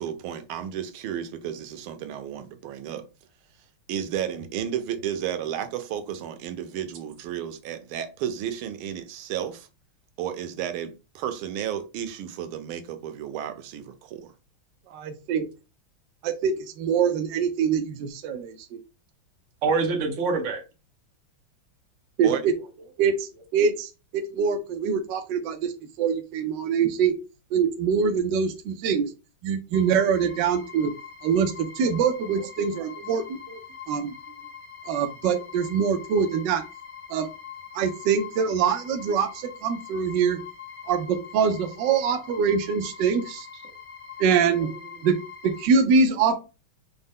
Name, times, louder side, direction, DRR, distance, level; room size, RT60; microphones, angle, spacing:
voice 1, 0.0-3.1 3.9-9.7 10.2-14.3 22.2-22.4, right 10 dB, 90° right, 1.5 m, -32 dB
voice 2, 14.9-15.5 16.2-18.6 22.2-22.5 23.0-23.2 23.5-25.7 26.0-27.2 27.5-29.1 29.4-30.9 31.2-33.4 33.9-34.1 34.9-36.6 37.1-37.3 37.7-40.4 40.9-43.5 44.2-44.7 45.0-45.2 45.4-46.3, right 6 dB, 75° right, 1.1 m, -24 dB
voice 3, 19.6-20.6 32.4-33.1 33.5-33.6 44.6-44.7 46.3-46.4, right 4 dB, 50° right, 1.1 m, -27 dB
sound 1, 29.7-45.7, left 7 dB, 50° left, 1.4 m, -43 dB
5.2 x 2.1 x 3.6 m
omnidirectional pair, 2.2 m